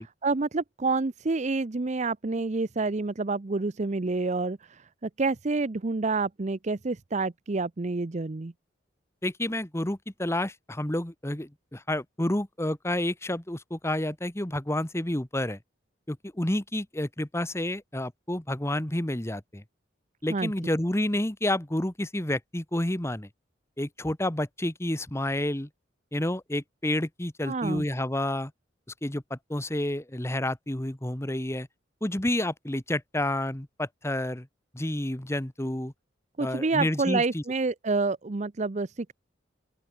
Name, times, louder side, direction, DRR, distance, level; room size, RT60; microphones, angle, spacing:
voice 1, 0.2-8.5 20.3-20.5 27.5-27.8 36.4-39.1, right 3 dB, 35° right, 0.6 m, -28 dB
voice 2, 9.2-15.6 16.1-19.6 20.2-23.3 23.8-25.7 26.1-28.5 29.0-31.7 32.0-34.5 34.7-35.9 36.4-37.4, left 1 dB, 15° left, 1.3 m, -30 dB
open air
head